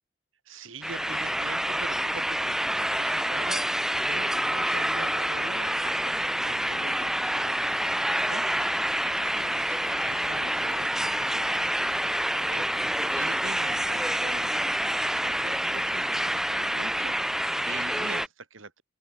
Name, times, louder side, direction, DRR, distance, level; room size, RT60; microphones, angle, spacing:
voice 1, 0.5-18.8, right 3 dB, 85° right, 3.9 m, -44 dB
sound 1, 0.8-18.3, right 1 dB, ahead, 0.7 m, -27 dB
sound 2, 7.6-16.0, left 3 dB, 60° left, 5.1 m, -54 dB
head